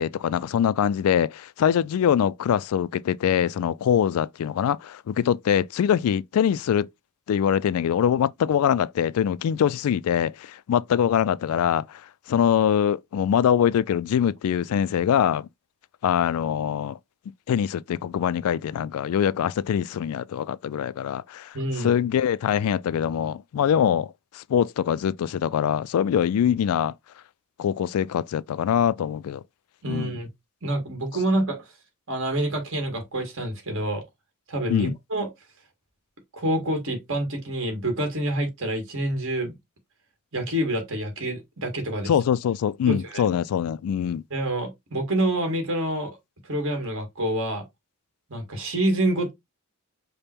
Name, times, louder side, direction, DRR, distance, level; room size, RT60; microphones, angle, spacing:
voice 1, 0.0-6.9 7.3-12.0 12.3-15.5 16.0-17.0 17.5-26.9 27.6-29.4 29.9-30.2 34.7-34.9 42.1-44.2, left 8 dB, 75° left, 0.3 m, -23 dB
voice 2, 21.5-21.9 29.8-30.3 30.6-31.7 32.1-34.0 34.5-35.3 36.3-39.5 40.3-42.1 42.9-43.3 44.3-46.2 46.4-47.6 48.3-49.3, right 1 dB, 60° right, 1.7 m, -27 dB
5.2 x 2.1 x 4.3 m
head